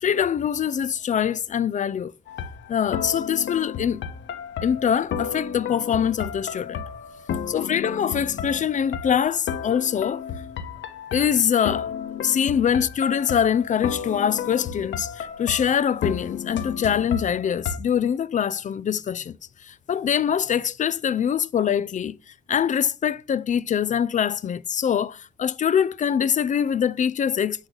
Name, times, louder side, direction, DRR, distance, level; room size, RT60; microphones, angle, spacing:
voice 1, 0.0-2.1 2.7-4.0 4.6-6.8 7.5-10.2 11.1-19.3 19.6-22.2 22.5-27.7, left 8 dB, 40° left, 0.4 m, -24 dB
sound 1, 2.3-17.8, left 7 dB, 70° left, 1.1 m, -33 dB
8.7 x 3.2 x 3.8 m
cardioid pair, 90°, 20 cm